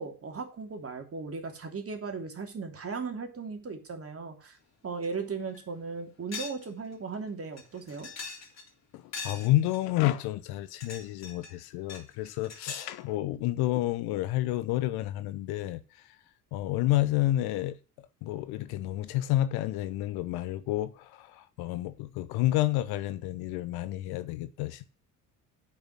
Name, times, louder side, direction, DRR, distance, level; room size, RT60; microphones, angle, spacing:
voice 1, 0.0-4.6 4.8-8.1, right 4 dB, 30° right, 3.1 m, -37 dB
Metal pipe pieces process bin, 5.0-5.1 5.5-5.6 6.3-6.7 6.9-7.0 7.6-8.7 9.1-9.8 10.5-11.5 11.9-13.0, left 5 dB, 35° left, 3.4 m, -41 dB
voice 2, 8.9-16.2 16.5-24.9, left 15 dB, 55° left, 0.9 m, -30 dB
8.9 x 5.9 x 6.1 m
figure-of-eight pair, 55°, 45 cm